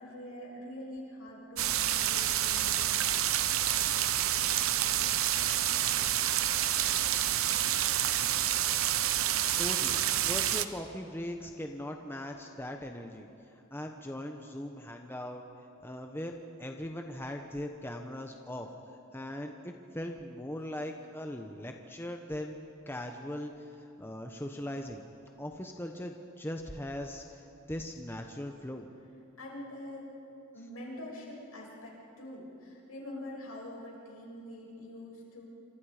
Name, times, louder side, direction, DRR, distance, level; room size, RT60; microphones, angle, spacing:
voice 1, 0.0-2.9 29.4-30.1 30.5-35.5, left 1 dB, 70° left, -2 dB, 7.0 m, -44 dB
sound 1, 1.6-10.7, right 11 dB, 65° right, 0.9 m, -28 dB
voice 2, 9.6-13.3 13.7-15.4 15.8-18.7 19.1-25.0 25.4-28.9, left 1 dB, 10° left, 3 dB, 1.0 m, -40 dB
28.5 x 26.0 x 5.0 m, 2.7 s
head